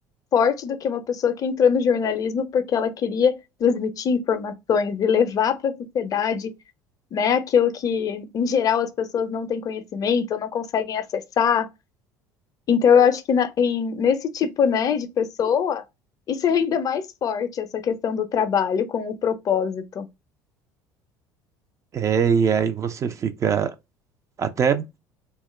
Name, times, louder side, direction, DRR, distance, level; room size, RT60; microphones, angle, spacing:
voice 1, 0.3-3.3 3.6-6.5 7.1-11.7 12.7-15.8 16.3-20.1, left 7 dB, 45° left, 0.5 m, -22 dB
voice 2, 21.9-23.7 24.4-24.9, right 7 dB, 35° right, 0.4 m, -22 dB
2.2 x 2.0 x 3.0 m
hypercardioid pair, 70°, 9 cm